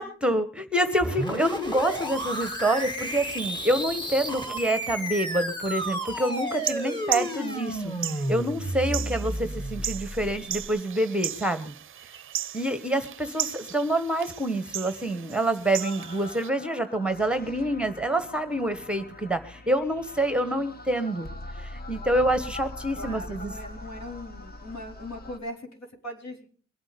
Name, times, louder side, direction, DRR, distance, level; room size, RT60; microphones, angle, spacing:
voice 1, 0.0-11.7 12.5-21.3 21.6-23.5, right 1 dB, 5° right, 10 dB, 1.3 m, -27 dB
sound 1, 1.0-10.7, right 1 dB, 15° left, 2.6 m, -32 dB
sound 2, 6.5-16.5, right 10 dB, 45° right, 0.6 m, -36 dB
sound 3, 15.8-25.4, left 2 dB, 30° left, 1.5 m, -42 dB
voice 2, 23.0-26.5, left 1 dB, 65° left, 2 dB, 4.4 m, -39 dB
22.5 x 8.8 x 5.2 m, 0.43 s
cardioid pair, 90°, 30 cm